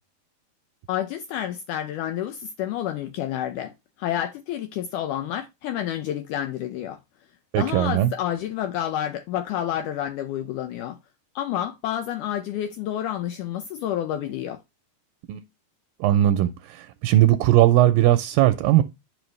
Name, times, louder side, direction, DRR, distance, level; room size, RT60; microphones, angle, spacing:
voice 1, 0.9-3.7 4.0-7.0 7.6-11.0 11.4-14.6, left 11 dB, 85° left, 1.8 m, -29 dB
voice 2, 7.5-8.1 15.3-15.4 16.0-18.8, right 13 dB, 80° right, 2.1 m, -19 dB
10.5 x 5.5 x 3.2 m
omnidirectional pair, 4.4 m